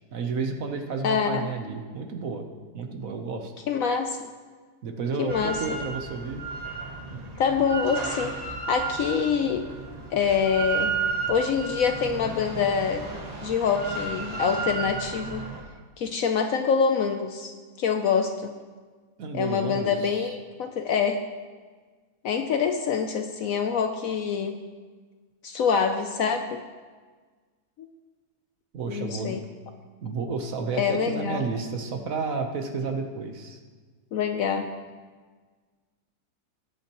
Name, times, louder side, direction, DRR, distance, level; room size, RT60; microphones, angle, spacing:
voice 1, 0.1-2.5 2.7-3.5 4.8-6.4 7.1-7.2 19.2-20.3 28.7-29.4 30.0-33.6, right 4 dB, 60° right, 4 dB, 1.3 m, -31 dB
voice 2, 1.0-1.5 3.7-4.2 5.2-5.6 7.4-8.4 8.7-9.7 10.1-10.9 11.3-13.1 13.4-15.4 16.0-18.5 19.3-21.2 22.2-24.6 25.4-26.6 27.8-27.9 28.9-29.4 30.7-31.4 34.1-34.7, left 6 dB, 65° left, 7 dB, 0.9 m, -25 dB
Drill, 5.3-15.6, right 5 dB, 25° right, 1.3 m, -33 dB
19.0 x 8.4 x 3.0 m, 1.5 s
omnidirectional pair, 1.8 m